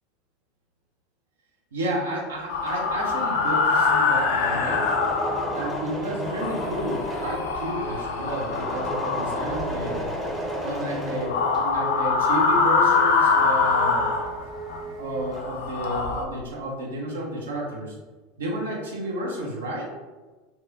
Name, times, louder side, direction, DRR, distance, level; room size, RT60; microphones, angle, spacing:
voice 1, 1.7-4.9 5.5-10.0 10.6-14.1 15.0-18.0 18.4-19.9, right 1 dB, 70° right, -3 dB, 0.5 m, -31 dB
Engine / Mechanisms, 2.4-12.0 12.3-14.7 15.0-15.7, equal, 15° right, 0.6 m, -34 dB
sound 1, 2.5-5.9 6.3-10.3 11.2-14.8 15.3-16.2, left 4 dB, 60° left, 0.3 m, -24 dB
sound 2, 2.8-15.3, right 5 dB, 50° right, 1.1 m, -40 dB
2.8 x 2.2 x 2.4 m, 1.2 s
figure-of-eight pair, 75°, 0 cm